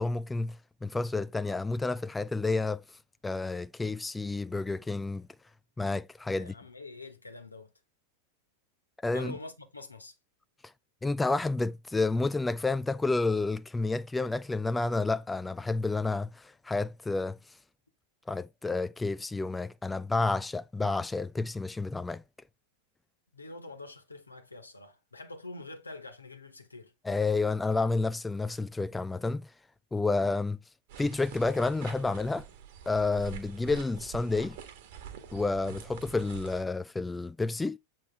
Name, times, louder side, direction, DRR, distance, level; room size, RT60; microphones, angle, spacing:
voice 1, 0.0-2.8 3.2-5.3 5.8-6.5 9.0-9.3 11.0-17.4 18.3-22.2 27.0-29.5 29.9-30.6 31.0-32.5 32.9-34.6 35.3-37.8, left 3 dB, 10° left, 0.4 m, -30 dB
voice 2, 6.4-7.7 9.1-10.1 23.3-26.9, left 2 dB, 80° left, 1.4 m, -45 dB
sound 1, 30.9-36.6, right 7 dB, 50° right, 1.7 m, -46 dB
8.3 x 4.4 x 3.6 m
figure-of-eight pair, 90°, 0 cm